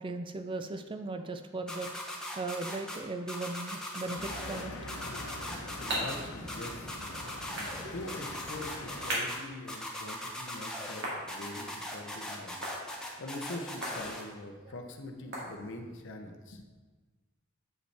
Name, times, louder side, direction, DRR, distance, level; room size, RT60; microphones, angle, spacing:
voice 1, 0.0-1.9 2.4-4.7 7.8-7.9, right 3 dB, 20° right, 8 dB, 0.3 m, -37 dB
sound 1, 1.7-3.0 3.3-4.6 4.9-6.2 6.5-7.8 8.1-9.4 9.7-11.0 11.3-14.2, left 1 dB, 5° left, 0.7 m, -39 dB
sound 2, 4.2-9.2, left 2 dB, 85° left, 0.9 m, -43 dB
sound 3, 5.2-16.0, right 1 dB, 50° right, 1.8 m, -42 dB
voice 2, 5.8-6.9 7.5-12.6 12.9-16.6, left 1 dB, 55° left, 4 dB, 0.6 m, -43 dB
7.7 x 5.1 x 3.3 m, 1.4 s
head